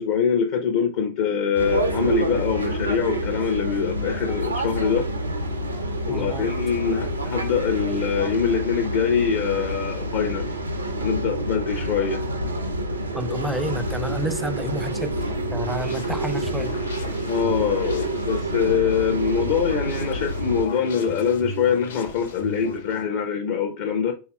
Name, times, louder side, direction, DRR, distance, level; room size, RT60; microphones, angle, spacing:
voice 1, 0.0-5.1 6.0-10.5 11.0-12.2 13.3-13.4 17.3-24.1, left 7 dB, 50° left, 0.7 m, -24 dB
sound 1, 1.5-20.7, right 1 dB, 80° right, 0.7 m, -28 dB
voice 2, 6.1-6.5 13.1-15.2 15.5-16.8, right 1 dB, 5° right, 0.4 m, -30 dB
sound 2, 15.0-23.0, left 1 dB, 70° left, 1.0 m, -38 dB
5.6 x 4.0 x 2.2 m
figure-of-eight pair, 90°, 0 cm